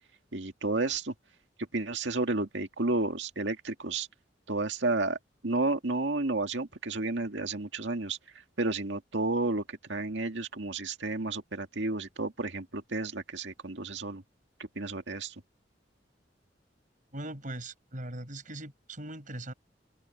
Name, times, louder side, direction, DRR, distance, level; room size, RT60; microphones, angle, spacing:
voice 1, 0.3-1.1 1.7-4.1 4.5-5.2 5.4-8.2 8.6-14.2 14.8-15.4, right 2 dB, 80° right, 2.0 m, -31 dB
voice 2, 17.1-19.5, right 1 dB, 45° right, 5.9 m, -40 dB
open air
head